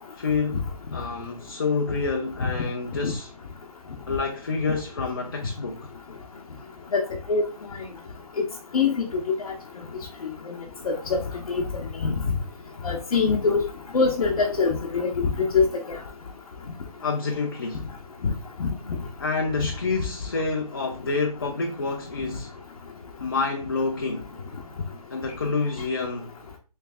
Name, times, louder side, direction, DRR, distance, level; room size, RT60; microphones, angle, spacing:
voice 1, 0.2-0.6 0.9-3.3 4.1-5.9 17.0-17.9 19.2-22.5 23.2-24.3 25.1-26.4, left 4 dB, 35° left, 0.4 m, -28 dB
voice 2, 6.9-7.4 8.4-8.5 8.7-9.3 10.5-10.6 10.8-11.2 11.5-11.6 12.0-12.2 12.8-13.7 13.9-16.0 18.6-18.7, left 4 dB, 60° left, 0.7 m, -23 dB
3.3 x 3.2 x 3.4 m
hypercardioid pair, 175°, 20 cm